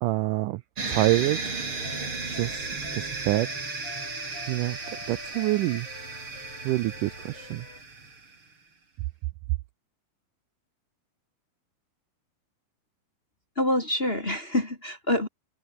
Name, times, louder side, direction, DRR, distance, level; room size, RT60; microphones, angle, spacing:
voice 1, 0.0-0.6 0.9-1.5 2.2-2.6 2.9-3.5 4.5-5.9 6.6-7.7, right 18 dB, 85° right, 1.8 m, -26 dB
sound 1, 0.8-8.4, right 4 dB, 35° right, 5.3 m, -35 dB
sound 2, 1.7-7.8, left 6 dB, 90° left, 7.1 m, -46 dB
voice 2, 13.6-15.3, left 1 dB, 20° left, 2.1 m, -26 dB
omnidirectional pair, 4.4 m